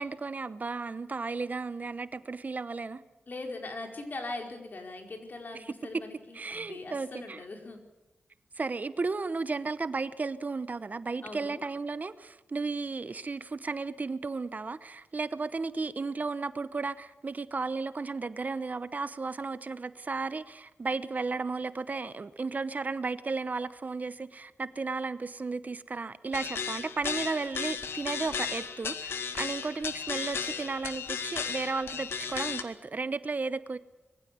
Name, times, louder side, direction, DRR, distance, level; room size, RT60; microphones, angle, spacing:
voice 1, 0.0-3.0 6.3-7.4 8.6-33.8, right 4 dB, 45° right, 14 dB, 0.9 m, -34 dB
voice 2, 3.3-7.8 11.2-11.6, left 2 dB, 50° left, 3 dB, 4.8 m, -41 dB
sound 1, 26.3-32.6, left 6 dB, 85° left, 1.6 m, -35 dB
23.0 x 15.5 x 9.5 m, 1.1 s
cardioid pair, 75°, 4 cm